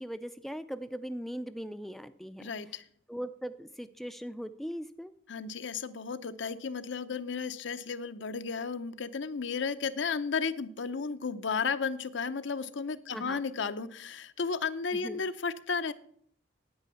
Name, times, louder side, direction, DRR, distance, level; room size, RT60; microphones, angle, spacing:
voice 1, 0.0-2.5 3.1-5.1 13.1-13.4 14.9-15.2, equal, ahead, 10 dB, 0.4 m, -39 dB
voice 2, 2.4-2.8 5.3-15.9, left 5 dB, 70° left, 12 dB, 0.7 m, -33 dB
9.6 x 9.2 x 7.0 m, 0.64 s
head